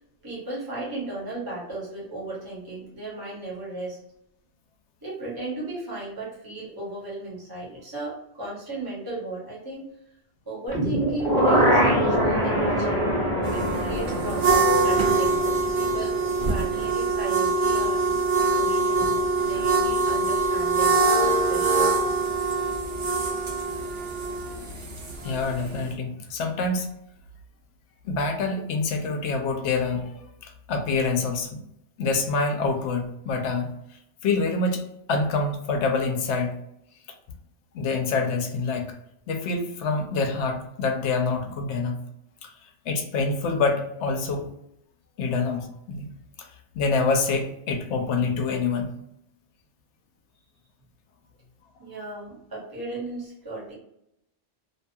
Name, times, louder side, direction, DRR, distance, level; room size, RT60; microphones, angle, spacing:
voice 1, 0.2-4.0 5.0-9.9 10.5-13.0 13.5-18.0 18.4-22.0 51.8-53.7, right 2 dB, 20° right, -6 dB, 1.0 m, -35 dB
sound 1, 10.7-16.7 17.0-17.1, equal, 5° left, 0.9 m, -24 dB
sound 2, 13.4-25.9, right 3 dB, 75° right, 1.0 m, -24 dB
voice 2, 25.2-26.9 28.0-31.6 32.0-33.7 34.2-34.8 35.1-36.6 37.7-38.9 39.3-42.0 42.4-44.5 45.2-46.1 46.4-46.5 46.7-48.9, left 3 dB, 75° left, 4 dB, 0.9 m, -26 dB
2.6 x 2.2 x 2.6 m, 0.77 s
omnidirectional pair, 1.2 m